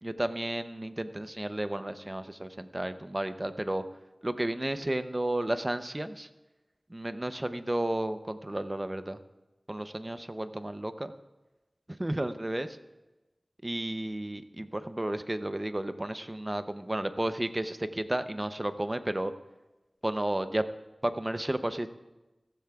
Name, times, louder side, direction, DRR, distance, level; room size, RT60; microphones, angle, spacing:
voice 1, 0.0-3.8 4.2-6.3 6.9-9.2 9.7-11.1 11.9-12.8 13.6-19.3 20.0-20.7 21.0-21.9, right 1 dB, 30° right, 10 dB, 0.6 m, -32 dB
17.0 x 15.0 x 2.4 m, 1.1 s
wide cardioid pair, 55°, 0 cm